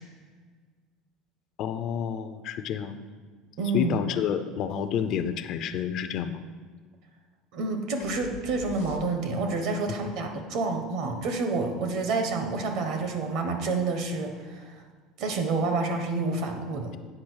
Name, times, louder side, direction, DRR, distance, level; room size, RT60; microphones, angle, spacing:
voice 1, 1.6-3.0 3.7-6.4, left 8 dB, 40° left, 9 dB, 0.4 m, -29 dB
voice 2, 3.6-4.0 7.5-14.8 15.2-16.9, right 3 dB, 50° right, 5 dB, 1.2 m, -28 dB
sound 1, 8.0-9.5, left 5 dB, 85° left, 0.9 m, -44 dB
8.7 x 5.3 x 6.2 m, 1.5 s
cardioid pair, 170°, 0 cm